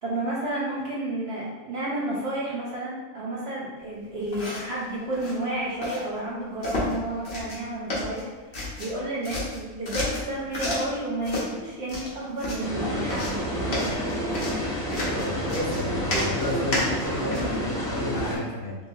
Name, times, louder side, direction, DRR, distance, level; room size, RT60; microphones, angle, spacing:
voice 1, 0.0-14.0, right 1 dB, 50° right, -6 dB, 0.8 m, -31 dB
sound 1, 4.2-4.8 5.1-5.4 5.8-6.0 6.6-7.0 7.3-7.6 7.9-9.0 9.2-11.0 11.2-11.5 11.9-12.7 13.1-17.6, left 1 dB, 50° left, 1.0 m, -31 dB
sound 2, 12.6-18.4, equal, 5° left, 0.8 m, -29 dB
voice 2, 15.1-18.8, left 2 dB, 70° left, -5 dB, 1.3 m, -31 dB
3.3 x 3.2 x 2.7 m, 1.2 s
omnidirectional pair, 1.6 m